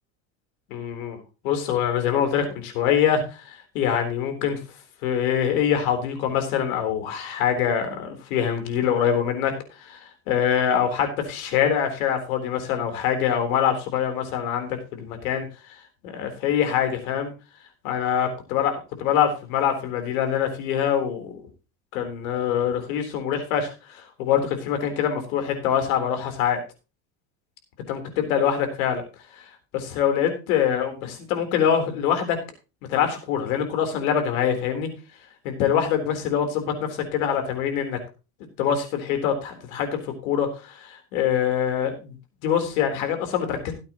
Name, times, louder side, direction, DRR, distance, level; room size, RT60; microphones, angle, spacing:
voice 1, 0.7-4.6 5.0-15.5 16.0-17.3 17.8-21.4 21.9-26.6 27.9-29.0 29.4-29.5 29.7-32.4 32.9-34.9 35.4-38.0 38.6-42.1 42.4-43.7, left 8 dB, 85° left, 6 dB, 3.8 m, -24 dB
17.0 x 8.6 x 3.0 m, 0.31 s
supercardioid pair, 110°, 41 cm